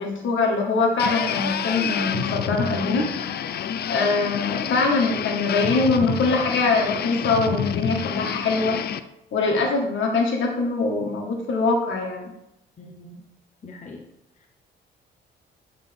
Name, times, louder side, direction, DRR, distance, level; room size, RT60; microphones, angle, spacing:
voice 1, 0.0-3.4 3.9-8.8 9.3-12.3, left 3 dB, 75° left, 0 dB, 1.8 m, -23 dB
sound 1, 1.0-9.0, left 8 dB, 55° left, 0.4 m, -28 dB
voice 2, 12.8-13.2 13.6-14.0 14.4-14.5, left 1 dB, 40° left, 1 dB, 0.9 m, -41 dB
8.6 x 3.9 x 3.6 m, 0.83 s
cardioid pair, 90°, 20 cm